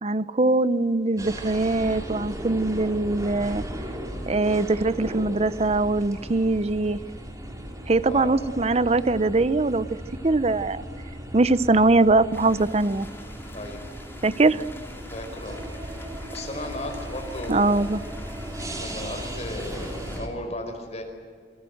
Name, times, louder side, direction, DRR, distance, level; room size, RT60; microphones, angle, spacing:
voice 1, 0.0-3.6 4.3-7.0 7.9-9.9 10.2-10.8 11.3-13.1 14.2-14.6 17.5-18.0, right 2 dB, 35° right, 16 dB, 0.7 m, -22 dB
sound 1, 1.2-20.3, equal, 20° right, 3.4 m, -37 dB
voice 2, 8.0-8.4 13.5-13.8 15.1-15.6 16.3-17.8 18.8-21.0, left 1 dB, 40° left, 3 dB, 4.8 m, -35 dB
sound 2, 12.3-20.2, left 1 dB, 15° left, 2.1 m, -45 dB
27.5 x 21.5 x 7.9 m, 2.2 s
head